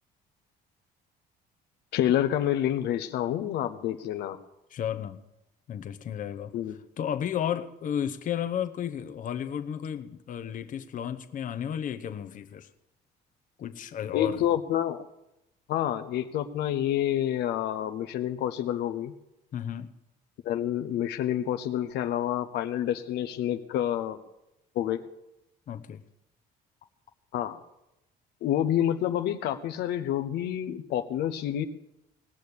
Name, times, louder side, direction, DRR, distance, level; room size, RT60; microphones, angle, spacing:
voice 1, 1.9-4.4 6.5-6.8 14.1-15.0 15.7-19.1 20.4-24.2 24.7-25.0 27.3-27.6 28.4-31.7, left 11 dB, 75° left, 0.9 m, -28 dB
voice 2, 4.7-5.2 5.7-12.7 13.6-14.4 19.5-19.9 25.7-26.0, left 9 dB, 50° left, 1.0 m, -33 dB
19.0 x 6.4 x 8.6 m
cardioid pair, 110°, 17 cm